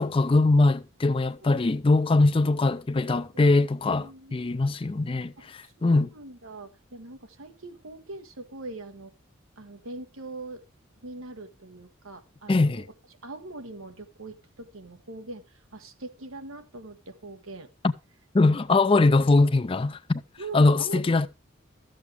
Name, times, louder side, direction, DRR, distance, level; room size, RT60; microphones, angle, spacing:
voice 1, 0.0-5.3 5.8-6.1 12.5-12.9 17.8-17.9 18.3-20.2 20.5-21.3, left 3 dB, 25° left, 0.4 m, -22 dB
voice 2, 3.8-4.6 5.4-9.1 9.6-10.6 11.0-12.9 13.2-17.7 20.4-21.0, right 2 dB, 90° right, 1.4 m, -42 dB
13.0 x 7.7 x 3.4 m
head